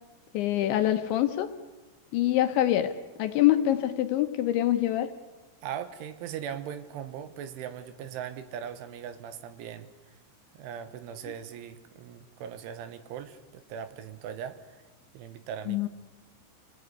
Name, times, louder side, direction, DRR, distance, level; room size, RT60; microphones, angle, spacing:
voice 1, 0.3-1.5 2.1-2.9 3.2-5.1 15.7-15.9, left 13 dB, 75° left, 8 dB, 3.0 m, -25 dB
voice 2, 5.6-10.2 10.5-14.8 15.2-15.9, right 9 dB, 75° right, 11 dB, 3.5 m, -39 dB
28.5 x 18.5 x 9.8 m, 1.2 s
omnidirectional pair, 5.9 m